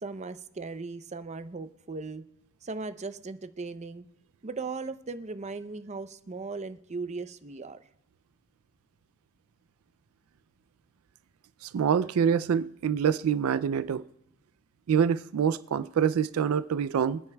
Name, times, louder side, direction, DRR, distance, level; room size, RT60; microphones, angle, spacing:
voice 1, 0.0-2.2 2.6-4.0 4.4-7.8, right 3 dB, 35° right, 0.6 m, -38 dB
voice 2, 11.6-14.0 14.9-17.2, right 7 dB, 90° right, 0.4 m, -26 dB
26.0 x 9.6 x 2.2 m
head